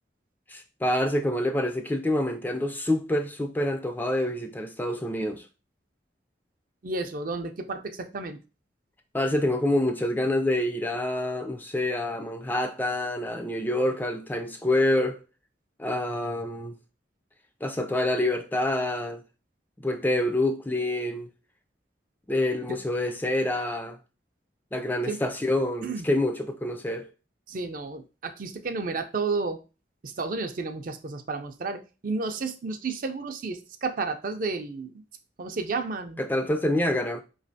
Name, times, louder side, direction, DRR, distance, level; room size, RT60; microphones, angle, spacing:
voice 1, 0.5-5.5 9.1-15.2 15.8-16.7 17.6-19.2 19.8-21.3 22.3-24.0 24.7-27.1 36.2-37.2, left 1 dB, 10° left, 0.3 m, -27 dB
voice 2, 6.8-8.4 22.7-22.8 25.1-25.2 25.8-26.1 27.5-29.6 30.0-35.0 35.4-36.2, right 3 dB, 50° right, 0.5 m, -32 dB
5.0 x 3.1 x 2.7 m
head